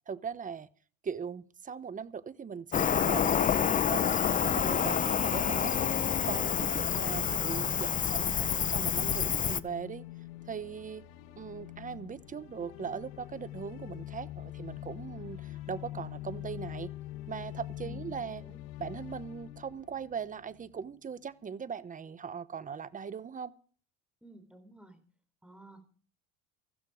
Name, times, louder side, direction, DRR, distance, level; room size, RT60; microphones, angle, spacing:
voice 1, 0.1-0.7 1.0-4.1 4.4-5.8 6.3-10.0 10.5-11.0 11.4-16.9 17.3-18.4 18.8-23.5, right 6 dB, 25° right, 1.0 m, -40 dB
Cricket, 2.7-9.6, left 8 dB, 25° left, 0.6 m, -28 dB
sound 1, 4.8-20.9, left 15 dB, 80° left, 1.3 m, -45 dB
voice 2, 17.8-18.6 24.2-25.0 25.4-25.8, right 2 dB, 5° right, 4.0 m, -53 dB
15.0 x 13.5 x 5.0 m
supercardioid pair, 115°, 34 cm